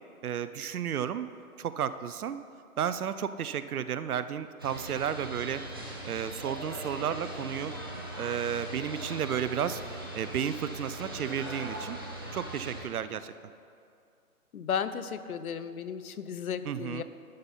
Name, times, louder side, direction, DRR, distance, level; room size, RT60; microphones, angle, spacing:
voice 1, 0.2-1.3 1.6-2.4 2.8-5.6 6.0-7.7 8.2-9.8 10.1-12.0 12.3-13.3 16.6-17.0, right 8 dB, 80° right, 13 dB, 0.6 m, -32 dB
sound 1, 4.6-12.8, right 1 dB, 15° right, 0.5 m, -40 dB
voice 2, 14.5-17.0, left 7 dB, 75° left, 12 dB, 0.6 m, -34 dB
11.5 x 4.2 x 5.4 m, 2.5 s
hypercardioid pair, 150°, 44 cm